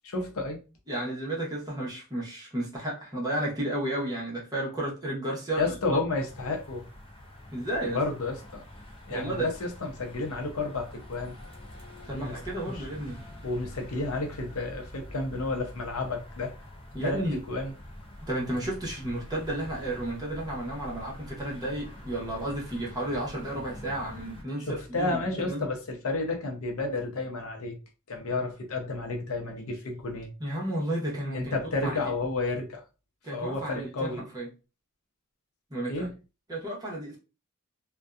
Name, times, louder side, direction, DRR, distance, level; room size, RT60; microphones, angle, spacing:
voice 1, 0.0-0.6 5.6-6.8 7.9-8.6 9.1-11.3 12.1-12.8 13.4-16.5 17.0-17.2 17.5-17.7 24.7-27.8 28.1-30.3 31.3-32.8 33.3-34.2 35.9-36.1, left 3 dB, 70° left, 0.6 m, -31 dB
voice 2, 0.9-6.0 7.5-8.0 9.1-9.5 12.1-13.2 16.9-17.4 18.2-25.7 30.4-31.5 31.8-32.1 33.2-34.5 35.7-36.1 36.5-37.2, right 1 dB, 20° right, 0.9 m, -32 dB
sound 1, 6.1-24.4, left 1 dB, 25° left, 0.5 m, -46 dB
2.6 x 2.2 x 2.3 m
head